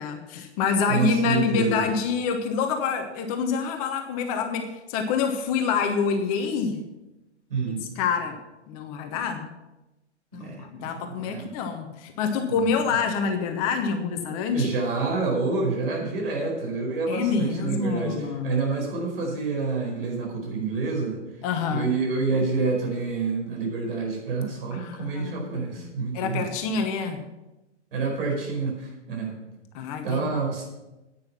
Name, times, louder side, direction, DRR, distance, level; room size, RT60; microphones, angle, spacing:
voice 1, 0.0-6.8 7.9-8.4 8.7-9.5 10.3-14.7 17.1-18.5 21.4-21.9 24.7-25.8 26.1-27.2 29.7-30.3, left 5 dB, 30° left, 6 dB, 1.2 m, -27 dB
voice 2, 0.9-1.9 7.5-7.9 10.3-11.5 12.5-12.8 14.5-21.2 21.7-26.5 27.9-29.3 30.0-30.7, right 4 dB, 55° right, 0 dB, 5.0 m, -28 dB
10.5 x 9.4 x 5.8 m, 1.0 s
figure-of-eight pair, 110°, 35 cm